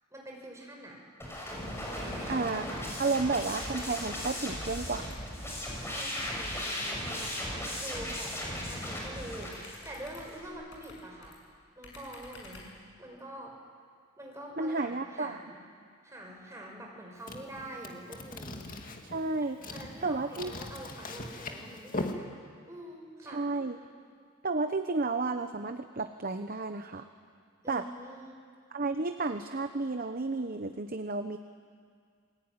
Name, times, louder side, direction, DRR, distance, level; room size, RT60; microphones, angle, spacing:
voice 1, 0.1-1.0 1.9-3.1 5.6-11.4 11.8-12.7 13.0-13.6 14.2-15.6 16.0-18.8 19.6-23.5 27.6-28.4, right 1 dB, 15° right, 0 dB, 5.7 m, -46 dB
sound 1, 1.2-10.5, left 1 dB, 10° left, 6.5 m, -37 dB
voice 2, 2.3-2.6 3.0-5.1 14.6-15.4 19.0-19.6 20.0-20.5 23.3-23.8 24.4-27.1 27.7-27.9 28.7-31.4, right 3 dB, 45° right, 8 dB, 1.0 m, -32 dB
sound 2, 3.2-4.0 4.2-5.4 6.1-6.4 7.8-8.8 9.4-11.4 11.8-12.8, left 2 dB, 65° left, 6.0 m, -52 dB
sound 3, 17.2-22.1, left 2 dB, 45° left, 2.3 m, -40 dB
28.5 x 20.5 x 9.7 m, 2.1 s
head